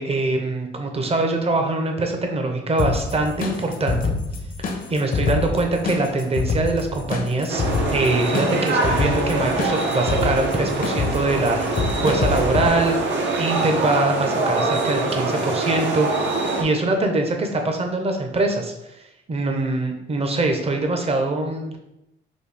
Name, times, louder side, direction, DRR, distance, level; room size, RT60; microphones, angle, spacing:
voice 1, 0.0-4.1 4.9-7.6 7.9-13.0 13.4-16.1 16.6-18.7 19.3-21.8, right 2 dB, 30° right, 4 dB, 0.7 m, -23 dB
sound 1, 2.8-12.7, left 4 dB, 45° left, 0.7 m, -27 dB
Outside Bars Night Skopje Ambience, 7.5-16.6, right 2 dB, 65° right, 0.8 m, -24 dB
4.2 x 2.7 x 3.3 m, 0.88 s
cardioid pair, 90°, 20 cm